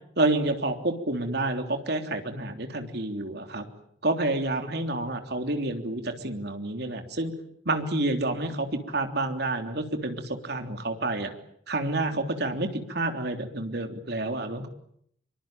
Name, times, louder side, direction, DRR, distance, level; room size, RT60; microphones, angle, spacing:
voice 1, 0.2-3.7 4.0-7.3 7.6-11.3 11.7-14.7, right 2 dB, 60° right, 6 dB, 3.4 m, -29 dB
25.5 x 24.0 x 9.1 m, 0.69 s
head